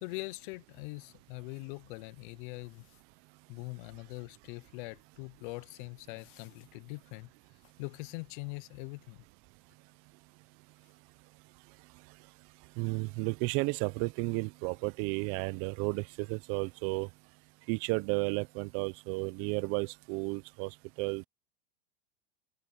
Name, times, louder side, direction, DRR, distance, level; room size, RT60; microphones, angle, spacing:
voice 1, 0.0-2.8 3.5-7.3 7.8-9.2, left 27 dB, 60° left, 0.6 m, -42 dB
voice 2, 12.8-17.1 17.7-21.3, right 27 dB, 45° right, 0.7 m, -33 dB
supercardioid pair, 130°, 29 cm